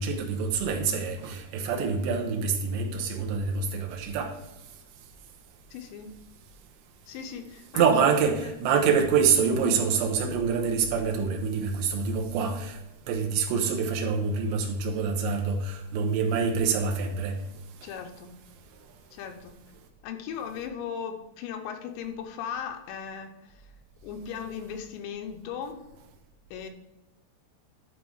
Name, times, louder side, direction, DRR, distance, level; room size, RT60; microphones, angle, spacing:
voice 1, 0.0-4.3 7.7-12.8 13.1-17.3, right 5 dB, 85° right, 3.3 m, -26 dB
voice 2, 5.7-6.1 7.1-7.9 8.4-8.5 17.8-18.3 19.1-19.6 20.0-23.6 24.0-25.9 26.5-26.7, left 7 dB, 80° left, 3.0 m, -37 dB
11.0 x 3.9 x 4.7 m
omnidirectional pair, 5.2 m